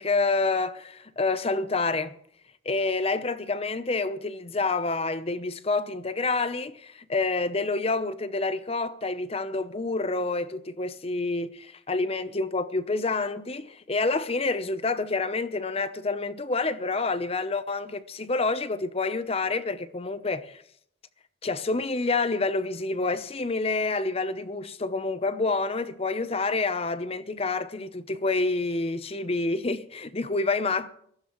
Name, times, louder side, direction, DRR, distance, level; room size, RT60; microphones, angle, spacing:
voice 1, 0.0-2.2 2.6-20.6 21.4-30.9, left 3 dB, 30° left, 0.8 m, -28 dB
21.5 x 14.5 x 3.1 m
head